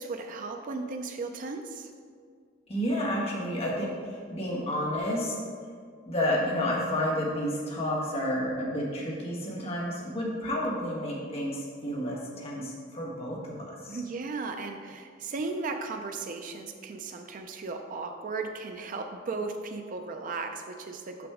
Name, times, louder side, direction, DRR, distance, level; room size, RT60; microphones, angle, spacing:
voice 1, 0.0-1.9 13.9-21.3, right 3 dB, 45° right, 5 dB, 0.4 m, -36 dB
voice 2, 2.7-5.4 6.1-14.0, equal, 30° left, -4 dB, 1.3 m, -30 dB
6.1 x 5.9 x 3.6 m, 2.1 s
head